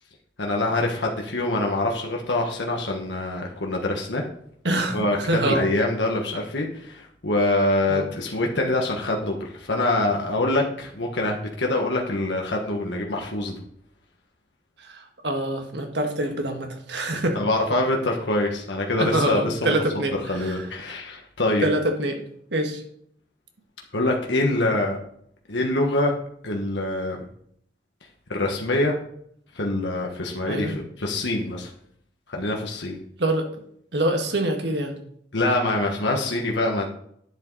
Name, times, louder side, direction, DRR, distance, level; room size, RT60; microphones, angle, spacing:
voice 1, 0.4-4.2 4.9-13.5 17.3-19.7 20.1-21.7 23.9-25.0 25.5-26.1 26.4-27.2 28.3-29.0 29.5-31.7 32.3-33.0 35.3-36.9, left 2 dB, 85° left, 1 dB, 1.3 m, -25 dB
voice 2, 4.6-5.6 7.9-8.1 14.8-17.4 19.0-20.6 21.6-22.2 22.5-22.8 30.4-30.7 33.2-33.5 33.9-34.9, right 1 dB, 80° right, 4 dB, 1.5 m, -25 dB
10.5 x 7.4 x 4.0 m, 0.67 s
head